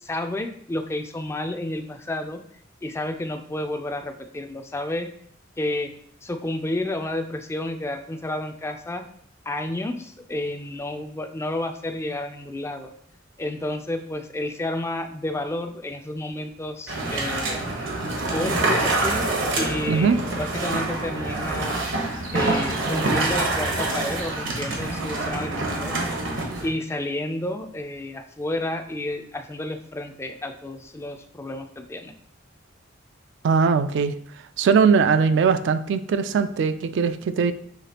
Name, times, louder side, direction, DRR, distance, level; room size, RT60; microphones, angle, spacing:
voice 1, 0.0-2.4 2.8-5.1 5.6-5.9 6.2-9.0 9.5-12.9 13.4-17.9 18.3-19.2 19.6-21.8 22.3-26.0 26.6-32.1, left 1 dB, 15° left, 6 dB, 0.3 m, -30 dB
sound 1, 16.9-26.7, right 2 dB, 80° right, 1.1 m, -26 dB
voice 2, 33.4-34.2 34.6-37.5, right 5 dB, 65° right, 11 dB, 0.3 m, -20 dB
5.8 x 3.1 x 2.8 m, 0.64 s
head